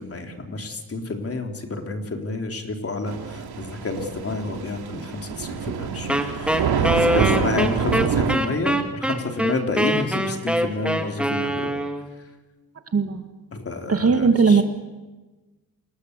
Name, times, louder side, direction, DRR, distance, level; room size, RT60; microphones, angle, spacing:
voice 1, 0.0-11.7 13.5-14.6, left 3 dB, 35° left, 4 dB, 3.8 m, -30 dB
Thunder / Rain, 3.1-8.4, right 7 dB, 75° right, 3.1 m, -26 dB
Wind instrument woodwind instrument, 6.1-12.2, right 1 dB, 5° right, 2.4 m, -23 dB
voice 2, 12.9-13.2 13.9-14.6, right 5 dB, 35° right, 7 dB, 2.1 m, -18 dB
29.5 x 21.0 x 8.3 m, 1.2 s
cardioid pair, 110°, 39 cm